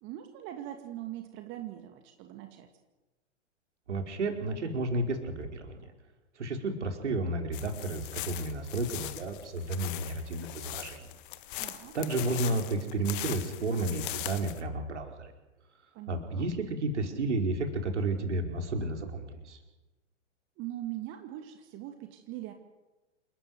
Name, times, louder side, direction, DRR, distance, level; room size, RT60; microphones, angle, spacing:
voice 1, 0.0-2.7 11.6-12.0 15.9-16.5 20.6-22.5, right 13 dB, 30° right, 5 dB, 2.3 m, -41 dB
voice 2, 3.9-5.9 6.4-11.1 11.9-15.3 16.1-19.6, right 2 dB, 65° right, 4 dB, 4.9 m, -32 dB
sound 1, 7.5-14.6, left 15 dB, 45° left, 1.7 m, -40 dB
28.5 x 13.5 x 9.6 m, 1.1 s
figure-of-eight pair, 110°, 37 cm